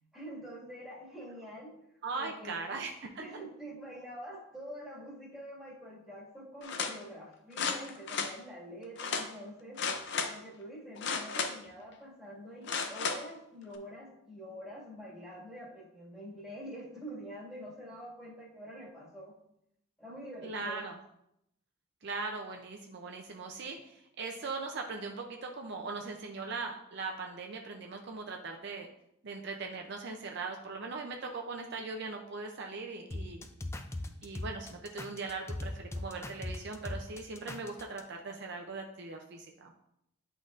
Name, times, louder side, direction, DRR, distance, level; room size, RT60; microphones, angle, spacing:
voice 1, 0.1-1.8 2.2-2.6 3.2-9.8 10.2-19.4 20.0-20.8, equal, 5° right, -8 dB, 1.9 m, -46 dB
voice 2, 2.0-3.2 20.4-21.0 22.0-28.9 29.2-33.5 34.2-39.7, right 3 dB, 55° right, 2 dB, 0.5 m, -40 dB
sound 1, 6.6-6.9 7.5-8.3 9.0-9.3 9.8-10.3 11.0-11.7 12.6-13.2 13.7-13.8, left 5 dB, 55° left, 0.6 m, -33 dB
sound 2, 33.1-38.0, left 1 dB, 15° left, 0.3 m, -39 dB
10.0 x 3.8 x 2.5 m, 0.79 s
head